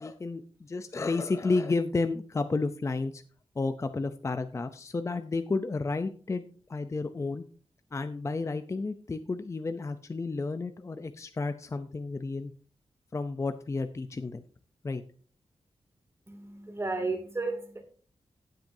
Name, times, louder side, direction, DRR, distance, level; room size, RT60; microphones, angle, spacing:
voice 1, 0.0-3.2 3.6-6.4 6.7-7.4 7.9-12.5 13.1-14.4 14.8-15.0, left 3 dB, 25° left, 9 dB, 0.5 m, -31 dB
voice 2, 16.3-17.8, right 3 dB, 25° right, 4 dB, 2.4 m, -33 dB
16.5 x 7.7 x 2.7 m, 0.42 s
wide cardioid pair, 170°, 11 cm